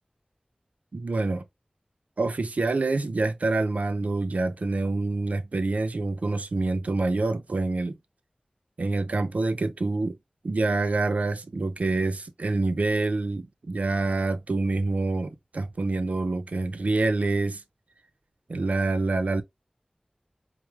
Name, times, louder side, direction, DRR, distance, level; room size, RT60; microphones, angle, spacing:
voice 1, 0.9-1.4 2.2-8.0 8.8-10.2 10.4-17.6 18.5-19.4, right 3 dB, 85° right, 0.5 m, -26 dB
4.6 x 2.1 x 2.8 m
wide cardioid pair, 50°, 2 cm